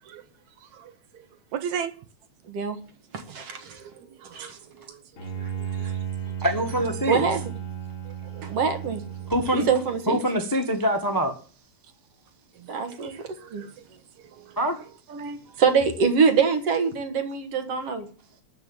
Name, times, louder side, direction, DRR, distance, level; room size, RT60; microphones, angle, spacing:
voice 1, 0.6-1.3 1.5-1.9 3.5-6.0 8.1-8.6 9.2-9.3 12.5-13.1 13.4-13.7 14.2-14.6 15.5-15.6, right 8 dB, 70° right, 2.3 m, -39 dB
voice 2, 2.5-2.8 3.1-3.8 4.3-4.6 7.1-7.4 8.4-9.0 9.5-10.2 12.7-13.7 15.1-18.1, right 5 dB, 55° right, 2.4 m, -24 dB
Bowed string instrument, 5.2-10.1, right 9 dB, 40° left, 1.3 m, -34 dB
voice 3, 6.4-7.2 9.3-9.7 10.1-11.3 14.6-14.8, equal, 15° left, 0.7 m, -24 dB
13.0 x 5.8 x 9.1 m
omnidirectional pair, 3.5 m